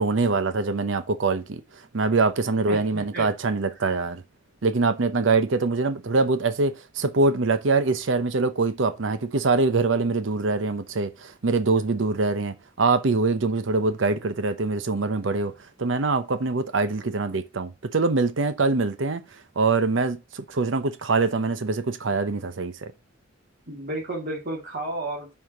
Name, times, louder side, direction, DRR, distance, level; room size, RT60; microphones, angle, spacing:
voice 1, 0.0-4.2 4.6-15.5 15.8-19.2 19.6-22.9, right 3 dB, 75° right, 0.7 m, -24 dB
voice 2, 2.7-3.3 23.7-25.4, right 1 dB, 50° right, 2.3 m, -32 dB
5.6 x 4.7 x 6.4 m
head